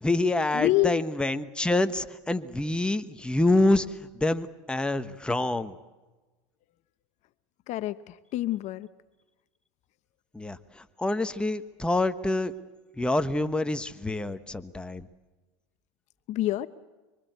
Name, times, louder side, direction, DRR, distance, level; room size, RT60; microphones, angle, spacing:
voice 1, 0.0-5.7 10.3-12.5 13.0-15.1, left 2 dB, 5° left, 10 dB, 1.2 m, -27 dB
voice 2, 0.5-1.0 7.7-7.9 8.3-8.9 16.3-16.7, left 16 dB, 50° left, 14 dB, 0.9 m, -26 dB
25.5 x 25.0 x 8.1 m, 1.2 s
supercardioid pair, 105°, 15 cm